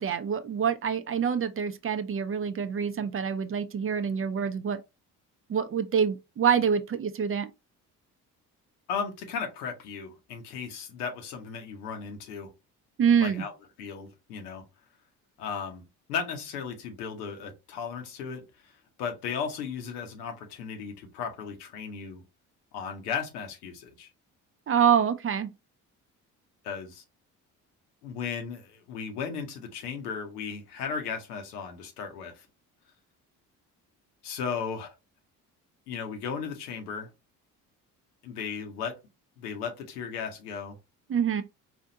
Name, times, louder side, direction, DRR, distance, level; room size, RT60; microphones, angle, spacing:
voice 1, 0.0-4.8 5.5-7.5 13.0-13.5 24.7-25.5 41.1-41.4, right 7 dB, 30° right, 0.5 m, -26 dB
voice 2, 8.9-12.5 13.2-13.5 13.8-14.6 15.4-15.8 16.1-18.7 19.0-22.2 22.7-24.1 26.6-27.0 28.0-32.5 34.2-34.9 35.9-37.1 38.2-39.0 39.4-40.8, left 6 dB, 85° left, 0.8 m, -35 dB
4.2 x 2.4 x 2.7 m
hypercardioid pair, 50°, 45 cm